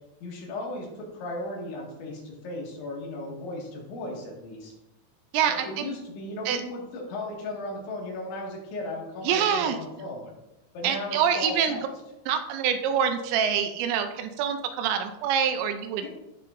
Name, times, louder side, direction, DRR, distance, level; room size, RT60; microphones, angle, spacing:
voice 1, 0.2-4.7 5.5-10.4 10.7-11.8 16.0-16.1, left 2 dB, 75° left, -2 dB, 4.3 m, -36 dB
voice 2, 5.3-5.8 6.5-6.6 9.3-9.8 10.8-11.8 12.3-16.1, right 8 dB, 80° right, 7 dB, 2.8 m, -25 dB
15.0 x 6.8 x 2.6 m, 0.95 s
omnidirectional pair, 5.5 m